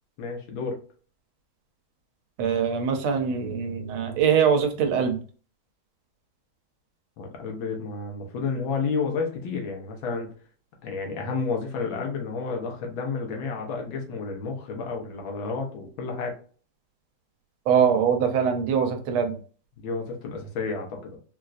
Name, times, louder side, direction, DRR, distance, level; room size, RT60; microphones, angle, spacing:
voice 1, 0.2-0.8 7.2-10.3 10.8-16.3 19.8-21.2, left 4 dB, 75° left, 2 dB, 1.6 m, -31 dB
voice 2, 2.4-5.2 17.7-19.3, right 7 dB, 90° right, 5 dB, 1.6 m, -23 dB
4.3 x 2.4 x 2.4 m, 0.40 s
omnidirectional pair, 2.3 m